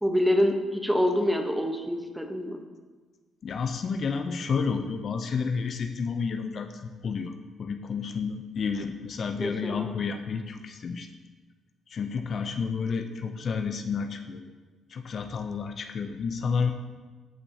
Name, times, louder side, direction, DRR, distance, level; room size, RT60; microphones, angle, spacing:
voice 1, 0.0-2.6 9.4-10.0, equal, 5° right, 5 dB, 1.0 m, -26 dB
voice 2, 3.4-7.3 7.6-11.1 11.9-14.4 14.9-16.7, left 5 dB, 55° left, 7 dB, 0.5 m, -30 dB
13.0 x 5.4 x 2.8 m, 1.4 s
supercardioid pair, 70°, 0 cm